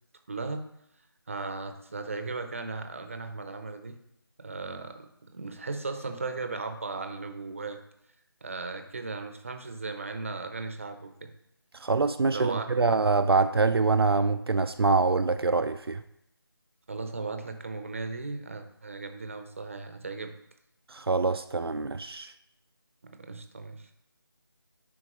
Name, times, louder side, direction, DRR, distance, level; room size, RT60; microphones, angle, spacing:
voice 1, 0.3-0.6 1.3-4.0 4.4-7.8 8.4-11.3 12.3-12.7 16.9-20.3 23.0-23.9, right 3 dB, 35° right, 7 dB, 0.7 m, -36 dB
voice 2, 11.8-16.0 20.9-22.3, right 4 dB, 75° right, 10 dB, 0.4 m, -25 dB
9.9 x 4.3 x 3.0 m, 0.77 s
figure-of-eight pair, 165°, 13 cm